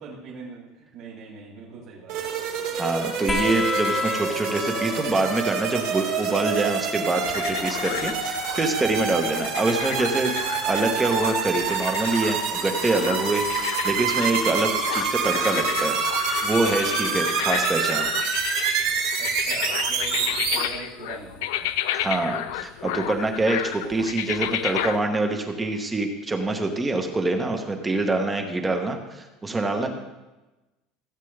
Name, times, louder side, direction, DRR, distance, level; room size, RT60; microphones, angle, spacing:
voice 1, 0.0-2.3 19.2-21.7, right 4 dB, 40° right, -6 dB, 2.8 m, -41 dB
sound 1, 2.1-20.6, right 5 dB, 75° right, 3.4 m, -27 dB
voice 2, 2.8-10.3 10.6-16.0 16.4-18.1 21.9-29.9, right 2 dB, 10° right, 4 dB, 1.0 m, -25 dB
sound 2, 3.3-10.4 11.7-12.5 13.8-13.9, left 3 dB, 10° left, 1.3 m, -34 dB
sound 3, 7.2-25.0, left 12 dB, 80° left, 0.5 m, -32 dB
16.5 x 8.3 x 3.3 m, 1.1 s
cardioid pair, 175°, 0 cm